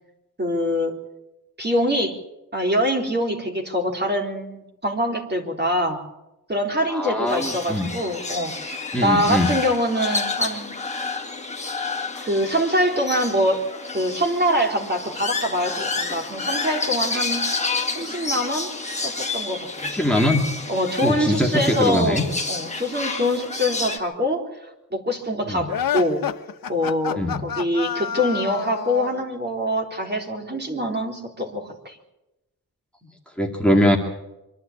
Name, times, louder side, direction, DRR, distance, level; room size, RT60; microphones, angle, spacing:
voice 1, 0.4-0.9 1.6-2.2 2.5-6.0 6.5-11.0 12.2-13.6 13.9-17.6 17.9-18.7 19.0-19.9 20.7-22.2 22.5-24.4 24.9-26.2 26.7-32.0 33.0-33.1, equal, 30° right, 2 dB, 3.8 m, -24 dB
voice 2, 6.9-7.9 8.9-9.5 17.1-17.2 19.8-20.5 21.0-22.2 25.5-25.7 27.2-27.5 33.4-34.0, left 1 dB, 5° left, 2 dB, 2.4 m, -21 dB
sound 1, 7.3-24.0, left 3 dB, 20° left, 2.2 m, -30 dB
sound 2, 25.7-29.2, left 8 dB, 65° left, 1.0 m, -28 dB
25.0 x 12.0 x 8.7 m, 0.96 s
cardioid pair, 70°, 37 cm